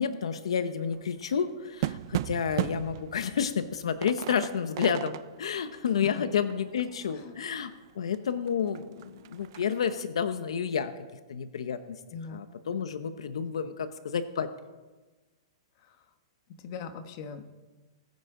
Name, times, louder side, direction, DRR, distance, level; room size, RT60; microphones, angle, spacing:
voice 1, 0.0-7.7 8.0-10.9 11.3-12.0 12.3-14.5, left 7 dB, 90° left, 11 dB, 0.8 m, -30 dB
sound 1, 0.8-7.7 8.1-8.2 8.5-10.0, right 14 dB, 50° right, 0.4 m, -37 dB
voice 2, 12.1-12.4 15.8-16.0 16.6-17.4, left 5 dB, 40° left, 8 dB, 1.2 m, -40 dB
20.5 x 9.6 x 3.8 m, 1.2 s
hypercardioid pair, 160°, 3 cm